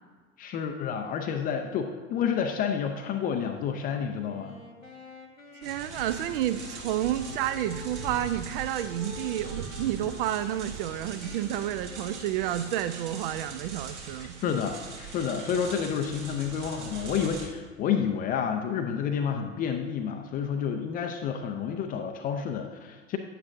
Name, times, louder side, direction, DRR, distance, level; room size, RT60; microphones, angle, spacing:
voice 1, 0.4-4.5 14.4-23.2, left 7 dB, 25° left, 5 dB, 0.5 m, -30 dB
Wind instrument woodwind instrument, 4.2-8.4 8.9-10.3 10.7-13.9, left 3 dB, 90° left, 1.0 m, -49 dB
voice 2, 5.6-14.3, right 12 dB, 45° right, 12 dB, 0.5 m, -30 dB
sound 1, 5.6-17.5, right 4 dB, 65° right, 1.6 m, -41 dB
9.4 x 8.9 x 2.5 m, 1.5 s
figure-of-eight pair, 80°, 39 cm